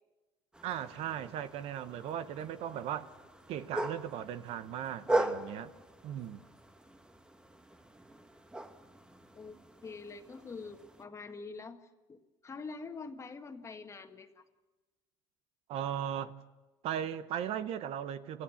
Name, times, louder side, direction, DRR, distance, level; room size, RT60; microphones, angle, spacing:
sound 1, 0.5-11.0, right 1 dB, 5° right, 1.2 m, -40 dB
voice 1, 0.6-3.1 3.5-5.7 6.0-6.4 15.7-16.3 16.8-18.4, right 10 dB, 55° right, 13 dB, 1.0 m, -37 dB
voice 2, 9.8-11.8 12.1-14.4, left 4 dB, 25° left, 7 dB, 1.6 m, -45 dB
27.0 x 15.0 x 7.1 m, 1.2 s
supercardioid pair, 105°, 12 cm